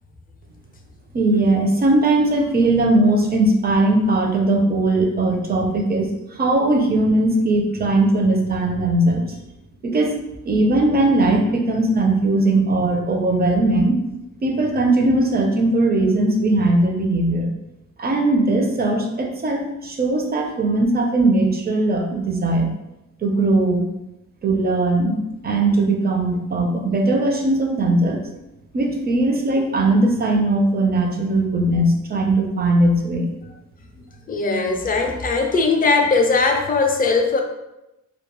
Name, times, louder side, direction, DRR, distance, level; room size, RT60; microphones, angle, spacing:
voice 1, 1.1-9.2 9.8-10.2 10.4-14.0 14.4-17.5 18.0-22.8 23.2-23.9 24.4-28.2 28.7-33.3, right 2 dB, 30° right, 2 dB, 0.4 m, -19 dB
voice 2, 34.3-37.4, left 3 dB, 30° left, 2 dB, 0.4 m, -19 dB
2.2 x 2.2 x 2.9 m, 0.91 s
cardioid pair, 115°, 31 cm